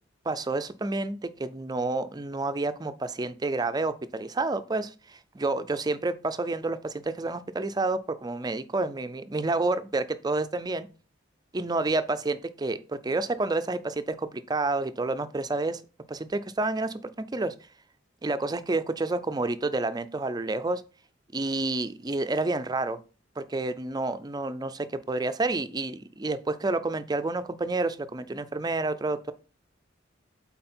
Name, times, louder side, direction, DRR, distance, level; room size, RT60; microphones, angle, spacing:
voice 1, 0.3-10.9 11.5-15.8 16.1-17.5 18.2-20.8 21.3-23.0 23.4-29.3, right 2 dB, 20° right, 12 dB, 0.5 m, -29 dB
7.8 x 4.3 x 4.4 m, 0.35 s
head